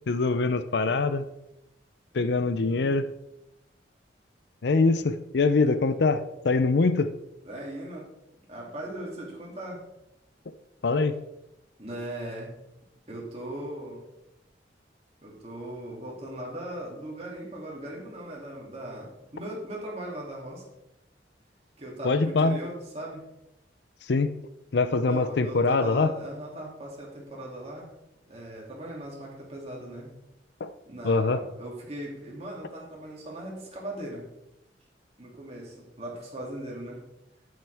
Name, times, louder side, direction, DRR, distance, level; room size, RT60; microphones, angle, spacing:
voice 1, 0.1-1.2 2.1-3.1 4.6-7.1 10.8-11.1 22.0-22.6 24.1-24.3 24.7-26.1 30.6-30.7 31.0-31.4, left 3 dB, 65° left, 12 dB, 0.5 m, -23 dB
voice 2, 7.4-8.1 8.5-9.8 11.8-12.5 13.1-14.1 15.2-20.6 21.8-23.2 25.1-27.9 28.3-30.1 30.8-34.2 35.2-37.0, right 1 dB, 35° right, -3 dB, 2.6 m, -38 dB
8.8 x 8.8 x 3.4 m, 0.87 s
head